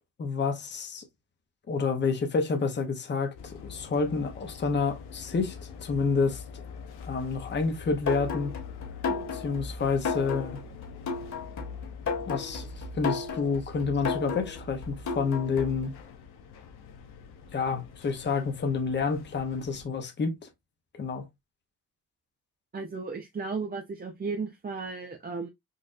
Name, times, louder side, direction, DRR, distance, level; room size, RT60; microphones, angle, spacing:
voice 1, 0.2-1.0 1.7-6.4 7.0-8.5 9.3-10.6 12.3-12.7 12.9-15.9 17.5-20.3 20.9-21.2, left 4 dB, 30° left, 0.8 m, -29 dB
sound 1, 3.4-19.9, left 6 dB, 85° left, 0.8 m, -45 dB
sound 2, 8.1-15.9, left 4 dB, 50° left, 1.8 m, -33 dB
voice 2, 22.7-25.5, right 4 dB, 25° right, 0.6 m, -35 dB
4.0 x 2.5 x 2.4 m
cardioid pair, 90°, 38 cm